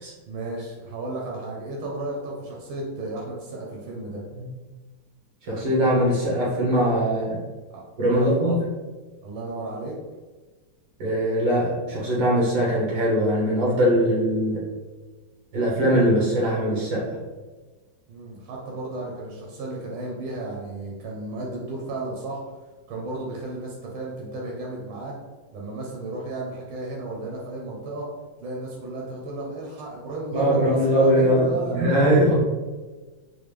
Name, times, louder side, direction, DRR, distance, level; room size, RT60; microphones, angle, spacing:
voice 1, 0.3-4.2 7.7-7.8 8.1-8.5 9.2-9.9 18.1-22.4 22.9-25.1 25.5-28.1 28.4-31.8, right 2 dB, 85° right, -2 dB, 1.6 m, -33 dB
voice 2, 5.4-7.4 8.0-8.6 11.0-14.6 15.5-17.2 30.3-32.3, equal, 65° right, -6 dB, 1.7 m, -21 dB
4.7 x 2.1 x 3.2 m, 1.3 s
omnidirectional pair, 2.2 m